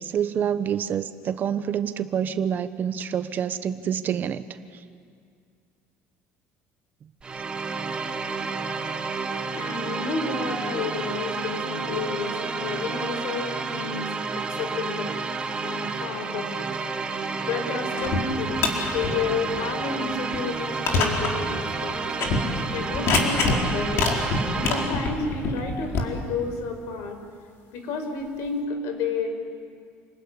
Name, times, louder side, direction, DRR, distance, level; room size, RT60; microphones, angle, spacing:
voice 1, 0.0-4.4, right 8 dB, 35° right, 11 dB, 1.0 m, -27 dB
sound 1, 7.2-25.2, right 4 dB, 20° right, 1.6 m, -30 dB
voice 2, 9.5-14.1 14.5-15.1 15.6-16.8 17.4-18.7 18.9-22.4 22.7-24.1 24.5-27.2 27.7-29.3, left 4 dB, 70° left, 5 dB, 5.1 m, -31 dB
sound 2, 18.0-18.2 18.5-19.1 19.6-19.7 20.3-20.4 20.9-21.3 21.6-21.7 22.1-22.4 22.9-23.6 23.9-26.0, left 4 dB, 55° left, 4.4 m, -24 dB
29.0 x 20.5 x 10.0 m, 2.3 s
cardioid pair, 155°, 5 cm